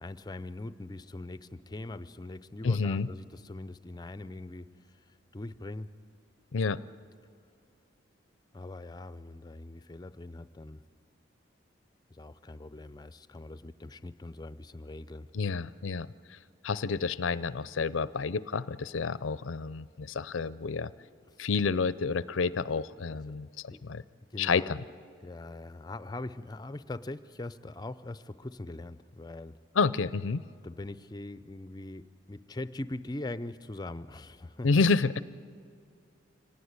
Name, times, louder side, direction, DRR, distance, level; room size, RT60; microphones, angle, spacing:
voice 1, 0.0-4.8 5.3-6.0 8.5-10.8 12.1-15.3 21.3-21.4 23.1-23.4 23.7-23.8 24.3-24.8 25.2-29.6 30.6-34.7, left 2 dB, 20° left, 13 dB, 0.5 m, -42 dB
voice 2, 2.6-3.1 6.5-6.8 15.3-16.4 16.6-20.9 21.4-24.0 24.4-24.8 29.8-30.4 34.6-35.2, left 4 dB, 90° left, 17 dB, 0.5 m, -29 dB
25.5 x 18.0 x 9.6 m, 2.2 s
head